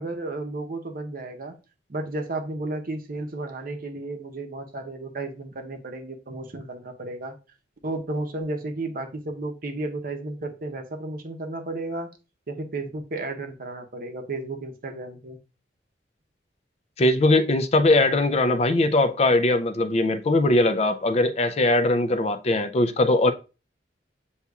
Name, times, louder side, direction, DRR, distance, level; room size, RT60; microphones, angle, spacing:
voice 1, 0.0-1.5 1.9-7.3 7.8-12.1 12.5-15.4, right 2 dB, 55° right, 0.8 m, -33 dB
voice 2, 17.0-23.3, left 2 dB, 35° left, 0.4 m, -20 dB
8.1 x 2.8 x 2.3 m
head